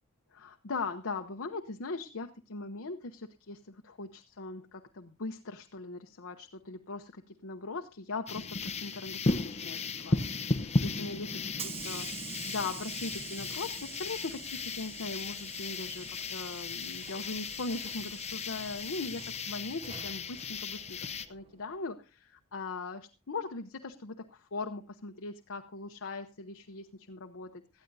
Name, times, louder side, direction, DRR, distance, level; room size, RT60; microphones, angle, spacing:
voice 1, 0.3-12.1 12.5-27.8, left 3 dB, 60° left, 5 dB, 0.9 m, -40 dB
sound 1, 8.3-21.3, left 3 dB, 30° left, 0.8 m, -35 dB
Hiss / Sliding door, 10.9-21.7, right 6 dB, 25° right, 0.8 m, -47 dB
18.0 x 13.0 x 2.7 m, 0.31 s
head